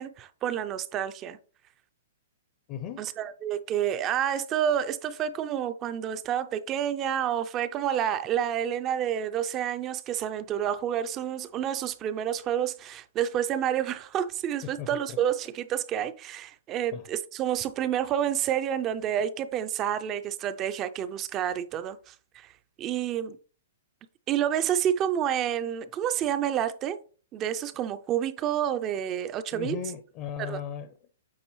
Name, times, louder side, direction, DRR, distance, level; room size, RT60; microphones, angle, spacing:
voice 1, 0.0-1.4 3.0-22.5 22.8-23.4 24.3-27.0 27.3-29.8 30.4-30.6, right 10 dB, 20° right, 0.4 m, -29 dB
voice 2, 2.7-3.0 14.8-15.2 16.9-17.1 29.5-31.1, left 8 dB, 30° left, 0.5 m, -37 dB
8.4 x 4.5 x 3.0 m
hypercardioid pair, 165°, 0 cm